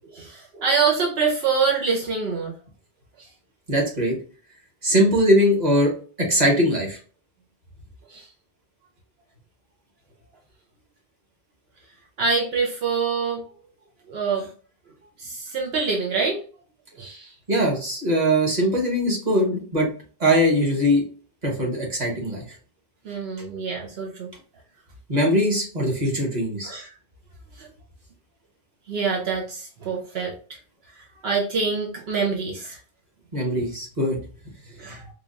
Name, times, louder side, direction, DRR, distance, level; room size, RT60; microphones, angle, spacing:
voice 1, 0.1-2.5 8.1-8.3 12.2-13.4 14.1-14.5 15.2-16.4 17.0-17.3 23.0-24.3 26.6-26.9 27.6-27.7 28.9-30.3 31.2-32.8 34.8-35.0, right 5 dB, 80° right, 0 dB, 1.0 m, -25 dB
voice 2, 3.7-4.2 4.8-5.9 6.2-7.0 17.5-19.9 20.2-21.0 21.4-22.4 25.1-26.7 33.3-34.2, equal, 45° right, -2 dB, 1.3 m, -21 dB
4.7 x 2.4 x 2.5 m, 0.40 s
omnidirectional pair, 1.0 m